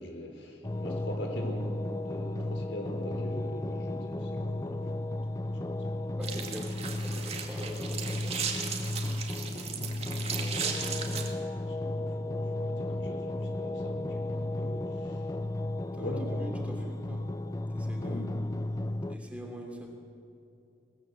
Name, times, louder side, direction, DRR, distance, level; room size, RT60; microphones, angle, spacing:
voice 1, 0.0-5.1 5.4-6.1 9.2-15.4 15.9-16.5 18.0-18.4, equal, 70° left, 3 dB, 4.1 m, -42 dB
sound 1, 0.6-19.2, left 1 dB, 20° left, 0.4 m, -34 dB
voice 2, 6.2-8.7 15.9-17.3 17.7-18.3 19.1-19.9, equal, 5° right, 1 dB, 2.8 m, -43 dB
sound 2, 6.2-11.3, right 6 dB, 35° right, 2.3 m, -36 dB
21.0 x 19.5 x 7.7 m, 2.8 s
head